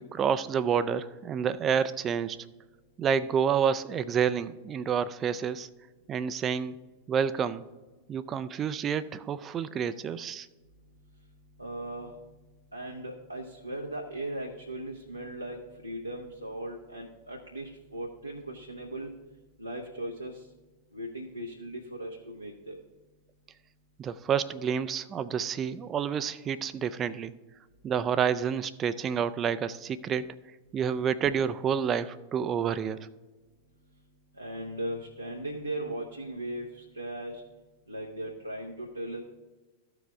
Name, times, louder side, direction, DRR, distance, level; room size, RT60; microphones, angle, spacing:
voice 1, 0.0-2.4 3.0-5.7 6.1-6.8 7.1-7.6 8.1-10.5 24.0-27.3 27.8-30.3 30.7-33.1, right 7 dB, 25° right, 14 dB, 0.4 m, -29 dB
voice 2, 11.6-12.1 12.7-19.1 19.6-20.4 20.9-22.8 34.4-37.4 37.9-39.2, right 1 dB, 85° right, 0 dB, 0.8 m, -38 dB
14.0 x 4.9 x 3.5 m, 1.2 s
figure-of-eight pair, 90°, 0 cm